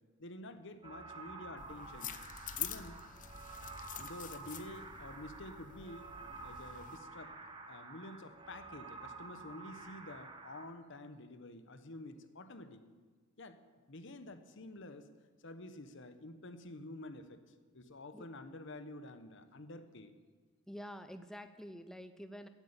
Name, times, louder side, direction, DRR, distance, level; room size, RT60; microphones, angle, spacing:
voice 1, 0.2-2.1 2.6-3.0 4.0-6.2 6.4-12.8 13.4-13.6 13.9-15.1 15.4-17.4 17.7-20.1, left 1 dB, 65° left, 10 dB, 1.1 m, -49 dB
sound 1, 0.8-10.7, right 3 dB, 25° right, 1.5 m, -50 dB
sound 2, 1.6-7.0, left 10 dB, 40° left, 0.7 m, -46 dB
voice 2, 20.7-22.5, equal, 5° left, 9 dB, 0.5 m, -48 dB
15.5 x 8.3 x 8.7 m, 1.5 s
head